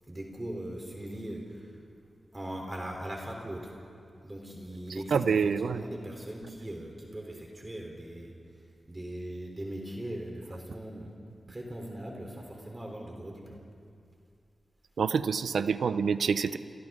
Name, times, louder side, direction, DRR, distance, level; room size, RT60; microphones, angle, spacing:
voice 1, 0.1-1.7 2.3-3.7 4.2-8.3 8.9-11.1 11.5-13.6, right 1 dB, 25° right, 0 dB, 3.4 m, -40 dB
voice 2, 5.1-5.8 15.0-16.6, right 6 dB, 85° right, 13 dB, 0.6 m, -27 dB
28.0 x 27.5 x 3.7 m, 2.5 s
cardioid pair, 65°, 0 cm